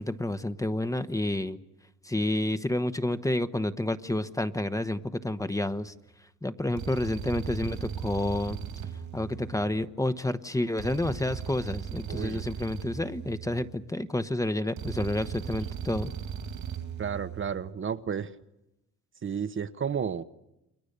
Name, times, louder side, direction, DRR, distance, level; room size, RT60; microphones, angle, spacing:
voice 1, 0.0-1.6 2.0-5.9 6.4-8.6 9.1-16.1, left 1 dB, 10° left, 11 dB, 1.1 m, -29 dB
sound 1, 5.7-6.0 6.8-10.0 10.8-14.0 14.8-17.7, right 8 dB, 75° right, 2.8 m, -38 dB
voice 2, 12.1-12.4 17.0-18.3 19.2-20.2, right 7 dB, 40° right, 11 dB, 1.1 m, -32 dB
29.5 x 23.0 x 6.8 m, 0.91 s
cardioid pair, 90°, 30 cm